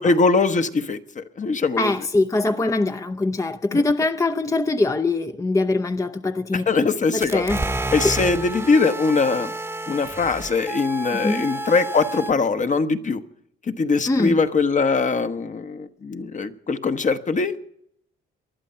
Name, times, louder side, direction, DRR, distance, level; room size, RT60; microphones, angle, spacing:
voice 1, 0.0-1.9 3.7-3.8 6.5-7.4 7.9-9.5 9.9-13.2 13.7-17.6, left 4 dB, 40° left, 1.1 m, -22 dB
voice 2, 1.8-6.9 7.1-7.6 8.0-8.1 11.1-11.5 14.1-14.4, left 2 dB, 15° left, 0.6 m, -23 dB
sound 1, 7.2-12.3, right 2 dB, 10° right, 1.0 m, -30 dB
20.5 x 11.5 x 5.6 m
cardioid pair, 90°, 20 cm